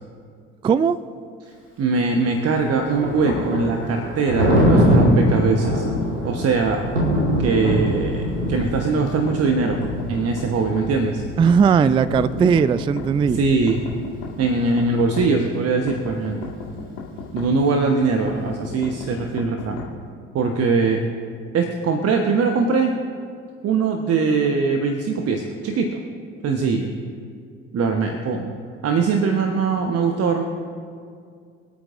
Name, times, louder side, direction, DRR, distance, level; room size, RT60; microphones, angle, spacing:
voice 1, 0.6-1.0 11.4-13.4, right 6 dB, 15° right, 17 dB, 0.3 m, -17 dB
voice 2, 1.8-5.9 6.2-6.8 7.4-9.8 10.1-11.2 13.3-13.8 14.4-16.4 17.3-19.8 20.3-21.0 21.5-22.9 23.6-26.0 26.4-26.9 27.7-28.5 28.8-30.4, right 4 dB, 45° right, 4 dB, 1.2 m, -21 dB
Thunder, 2.2-14.0, equal, 90° right, 2.0 m, -23 dB
sound 1, 9.3-10.9 11.5-13.1 13.7-15.3 15.9-17.5 18.3-19.9, left 5 dB, 70° left, 2.0 m, -35 dB
25.5 x 8.8 x 2.6 m, 2.2 s
figure-of-eight pair, 55°, 35 cm